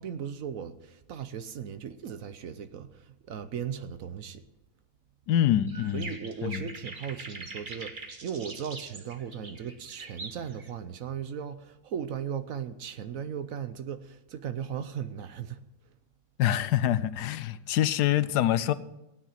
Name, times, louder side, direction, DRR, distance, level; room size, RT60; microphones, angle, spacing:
voice 1, 0.0-4.4 5.9-15.6, right 8 dB, 60° right, 1.1 m, -37 dB
voice 2, 5.3-6.1 6.4-6.6 16.4-18.7, left 11 dB, 85° left, 1.3 m, -25 dB
sound 1, 5.7-10.7, right 3 dB, 35° right, 1.2 m, -43 dB
16.0 x 9.7 x 5.8 m
omnidirectional pair, 1.7 m